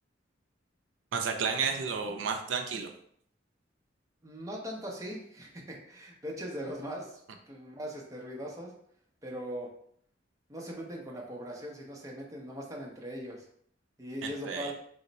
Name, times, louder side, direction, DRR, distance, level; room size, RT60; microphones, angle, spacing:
voice 1, 1.1-2.9 14.2-14.7, right 5 dB, 80° right, 5 dB, 0.4 m, -32 dB
voice 2, 4.2-7.2 7.5-8.7 9.2-9.7 10.5-13.4 14.0-14.7, equal, 15° right, -2 dB, 0.6 m, -40 dB
3.0 x 2.1 x 3.9 m, 0.65 s
head